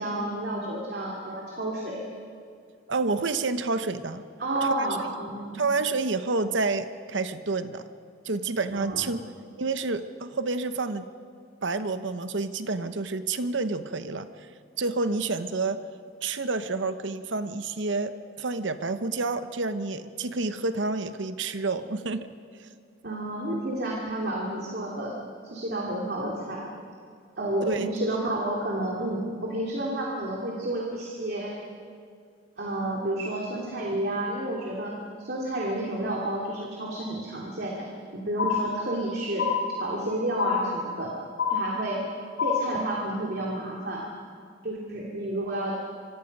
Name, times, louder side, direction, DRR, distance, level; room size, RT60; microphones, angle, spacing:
voice 1, 0.0-2.1 4.4-5.6 8.7-9.1 23.0-25.1 25.4-26.7 27.4-31.6 32.6-39.5 39.8-41.1 41.5-42.1 42.4-44.1 44.6-45.8, right 1 dB, 55° right, -2 dB, 2.7 m, -30 dB
voice 2, 2.9-4.2 4.6-4.9 5.5-7.8 8.2-9.2 9.6-11.1 11.6-14.3 14.8-15.8 16.2-22.3 27.6-27.9, right 3 dB, 70° right, 11 dB, 0.9 m, -29 dB
sound 1, 38.4-39.1 39.4-40.1 40.4-41.1 41.4-42.1 42.4-43.1, left 6 dB, 70° left, 4.6 m, -28 dB
25.5 x 25.0 x 5.4 m, 2.2 s
head